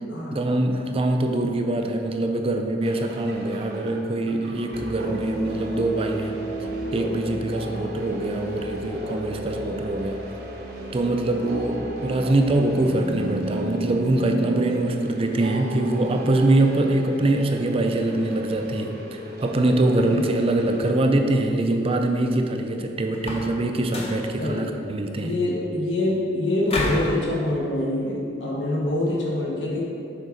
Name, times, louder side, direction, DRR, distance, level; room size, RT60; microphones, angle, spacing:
voice 1, 0.3-6.4 6.9-10.2 10.9-25.3, right 2 dB, 30° right, 4 dB, 0.4 m, -23 dB
sound 1, 2.8-20.9, right 1 dB, 55° right, 0.8 m, -34 dB
voice 2, 20.0-20.4 24.4-24.7 25.1-29.8, left 1 dB, 70° left, -4 dB, 1.1 m, -25 dB
sound 2, 23.1-23.6 23.9-24.3 26.7-27.1, left 1 dB, 35° left, 0.8 m, -28 dB
6.5 x 3.8 x 5.0 m, 2.7 s
head